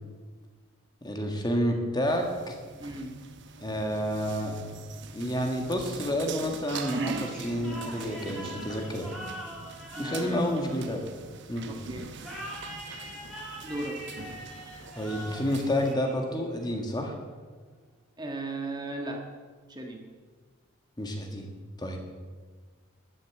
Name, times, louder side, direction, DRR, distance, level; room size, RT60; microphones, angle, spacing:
voice 1, 1.0-2.6 3.6-4.6 5.1-9.1 10.0-11.0 11.5-11.8 15.0-17.1 21.0-21.5 21.8-22.0, equal, 20° left, 3 dB, 1.7 m, -29 dB
sound 1, 2.1-15.9, right 4 dB, 50° right, 1.1 m, -42 dB
voice 2, 2.8-3.2 9.9-10.5 11.7-12.1 13.6-14.0 18.2-19.3 19.7-20.0, right 2 dB, 20° right, 2 dB, 1.6 m, -36 dB
sound 2, 6.6-11.4 12.2-16.6, equal, 5° left, 4.4 m, -43 dB
13.0 x 10.5 x 7.8 m, 1.5 s
head